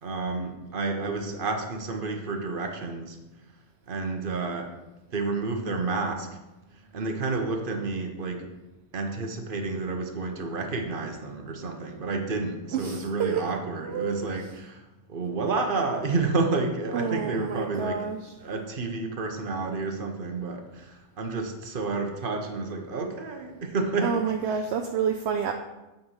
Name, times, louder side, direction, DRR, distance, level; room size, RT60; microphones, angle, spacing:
voice 1, 0.0-3.2 3.9-4.8 5.1-6.4 6.7-8.5 8.9-14.8 15.1-18.1 18.4-24.2 24.5-24.6, right 3 dB, 45° right, 4 dB, 1.1 m, -30 dB
voice 2, 12.7-13.4 13.8-14.5 16.9-18.3 24.0-25.5, right 6 dB, 65° right, 5 dB, 0.8 m, -29 dB
8.7 x 4.3 x 5.5 m, 1.0 s
omnidirectional pair, 1.3 m